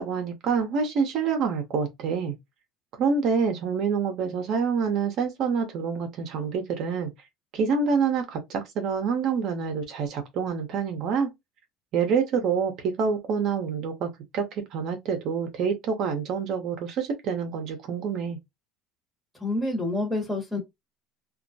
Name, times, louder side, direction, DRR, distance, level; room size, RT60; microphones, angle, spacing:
voice 1, 0.0-2.3 3.0-7.1 7.5-11.3 11.9-18.4, right 5 dB, 55° right, 0.6 m, -27 dB
voice 2, 19.4-20.6, left 2 dB, 5° right, 1.0 m, -27 dB
2.2 x 2.0 x 2.7 m
supercardioid pair, 110°, 0 cm